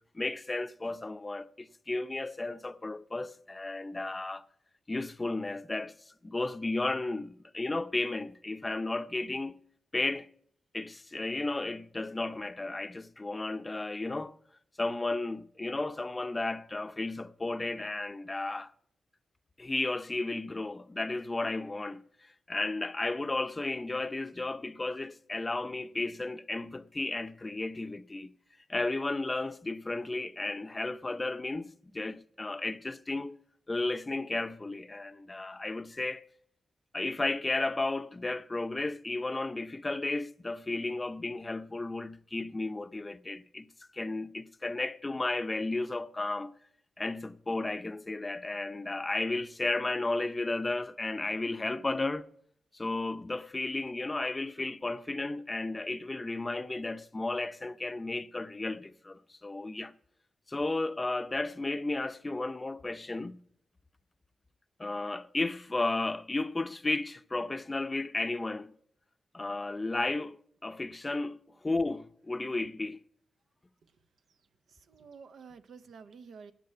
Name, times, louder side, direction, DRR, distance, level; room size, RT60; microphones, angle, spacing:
voice 1, 0.1-4.4 4.9-5.9 6.2-9.6 9.9-10.3 10.7-14.4 14.8-18.7 19.6-22.0 22.5-28.3 28.7-33.4 33.7-36.2 36.9-43.7 43.9-46.5 47.0-52.3 52.7-59.9 60.5-63.4 64.8-68.7 69.3-70.4 70.6-73.0, left 2 dB, 25° left, 0.6 m, -33 dB
voice 2, 74.7-76.5, right 5 dB, 75° right, 0.7 m, -50 dB
9.6 x 7.6 x 9.1 m
cardioid pair, 65°, 0 cm